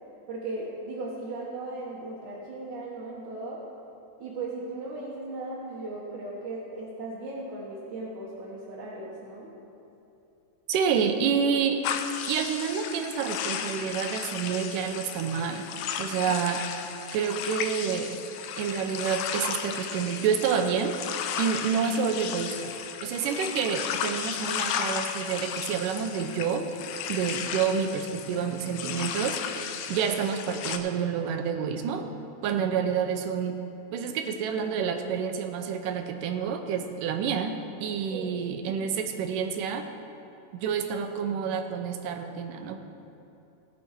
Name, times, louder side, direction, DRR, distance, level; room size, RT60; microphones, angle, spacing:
voice 1, 0.3-3.6 4.2-9.5 16.1-16.3 38.1-38.3, right 2 dB, 70° right, -7 dB, 2.7 m, -37 dB
voice 2, 10.7-11.9 12.3-15.7 16.0-16.6 17.1-18.2 18.5-20.9 21.4-22.7 23.0-26.7 27.1-32.0 32.4-33.6 33.9-37.5 37.8-39.9 40.5-42.8, right 7 dB, 85° right, 6 dB, 2.4 m, -28 dB
sound 1, 11.8-30.8, left 8 dB, 75° left, 1.9 m, -34 dB
17.5 x 7.0 x 4.6 m, 2.9 s
omnidirectional pair, 3.7 m